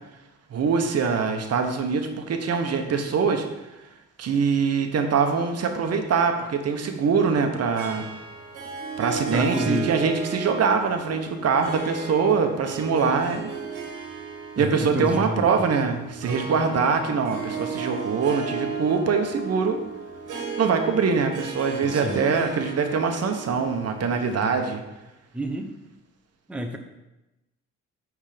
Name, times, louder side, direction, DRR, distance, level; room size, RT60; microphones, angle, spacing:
voice 1, 0.5-3.4 4.2-8.0 9.0-13.5 14.6-19.8 20.6-24.8, right 5 dB, 55° right, 5 dB, 1.0 m, -23 dB
Harp, 7.8-24.5, right 5 dB, 85° right, 1.5 m, -35 dB
voice 2, 9.3-9.9 14.6-15.5 21.8-22.2 25.3-25.7 26.5-26.8, right 1 dB, 5° right, 4 dB, 0.7 m, -29 dB
9.0 x 3.7 x 5.1 m, 0.99 s
cardioid pair, 90°, 30 cm